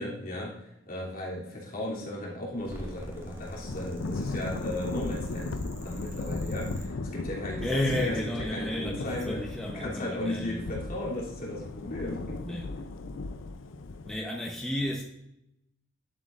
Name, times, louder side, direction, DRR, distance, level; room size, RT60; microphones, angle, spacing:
voice 1, 0.0-9.4 9.7-12.6, left 1 dB, 45° left, 2.9 m, -36 dB
sound 1, 2.5-6.9, equal, 15° right, 1.9 m, -43 dB
Thunder / Rain, 3.6-14.2, left 3 dB, 80° left, 0.5 m, -37 dB
voice 2, 7.6-10.6 12.4-12.7 14.0-15.0, left 1 dB, 5° left, 0.9 m, -32 dB
11.5 x 7.5 x 2.5 m
head